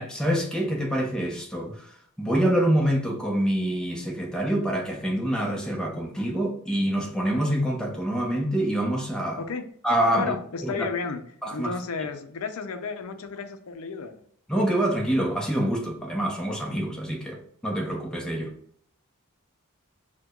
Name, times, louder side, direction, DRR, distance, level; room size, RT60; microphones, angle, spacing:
voice 1, 0.0-1.9 2.2-9.4 9.8-10.3 10.6-10.9 11.4-11.7 14.5-18.5, right 1 dB, 5° left, 0.6 m, -26 dB
voice 2, 10.1-11.2 11.5-14.2, left 4 dB, 75° left, 0.5 m, -32 dB
4.5 x 2.2 x 2.3 m
head